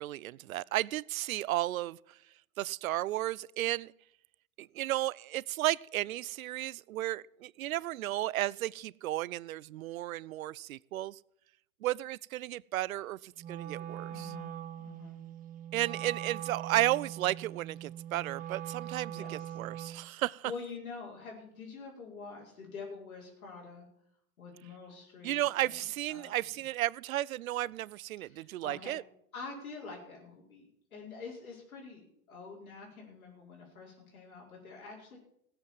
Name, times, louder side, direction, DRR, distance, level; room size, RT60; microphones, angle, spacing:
voice 1, 0.0-2.0 2.6-3.9 4.6-11.2 11.8-14.3 15.7-20.5 25.2-29.0, right 15 dB, 75° right, 24 dB, 0.6 m, -33 dB
Wind instrument woodwind instrument, 13.4-20.1, right 11 dB, 20° right, 0.8 m, -42 dB
voice 2, 14.1-15.2 15.9-16.0 19.1-19.6 20.1-23.9 24.4-26.6 28.2-29.0 29.3-35.2, left 4 dB, 80° left, -3 dB, 5.1 m, -47 dB
16.5 x 7.9 x 7.3 m, 0.74 s
hypercardioid pair, 115°, 42 cm